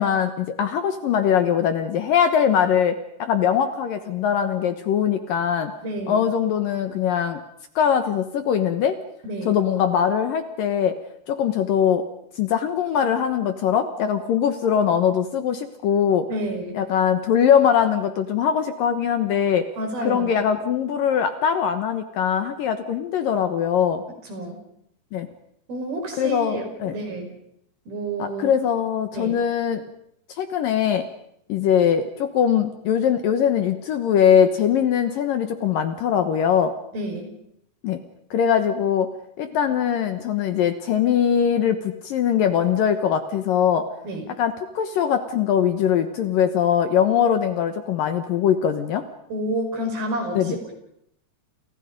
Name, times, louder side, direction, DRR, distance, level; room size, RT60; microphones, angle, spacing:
voice 1, 0.0-5.7 6.1-7.4 7.8-9.0 9.5-11.0 11.3-12.1 12.4-16.3 16.8-19.7 20.0-24.0 25.1-25.3 26.2-27.0 28.2-29.8 30.3-31.1 31.5-36.8 37.8-38.0 38.3-39.1 39.4-43.9 44.4-49.0 50.3-50.6, left 8 dB, 65° left, 9 dB, 2.5 m, -21 dB
voice 2, 5.8-6.3 9.2-9.6 16.3-16.8 19.8-20.4 24.2-24.6 25.7-27.3 27.9-28.5 29.1-29.4 36.9-37.4 44.0-44.3 49.3-50.7, right 1 dB, 60° right, 4 dB, 7.0 m, -29 dB
29.5 x 29.0 x 5.3 m, 0.74 s
omnidirectional pair, 4.9 m